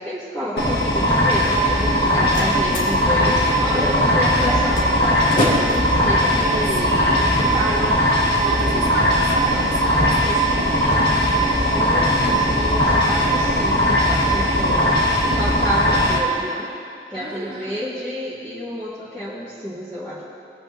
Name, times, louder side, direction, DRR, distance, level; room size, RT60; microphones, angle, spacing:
voice 1, 0.0-6.9 7.5-8.1 11.7-14.9 15.4-16.7 17.1-20.2, equal, 5° left, -12 dB, 1.9 m, -29 dB
sound 1, 0.6-16.2, equal, 70° left, 1.9 m, -19 dB
Slam, 1.8-7.7, equal, 50° left, 2.3 m, -30 dB
voice 2, 3.6-4.0 6.8-7.8 8.4-11.1 17.1-17.7, right 1 dB, 25° right, -5 dB, 2.5 m, -32 dB
20.5 x 8.6 x 2.9 m, 2.5 s
head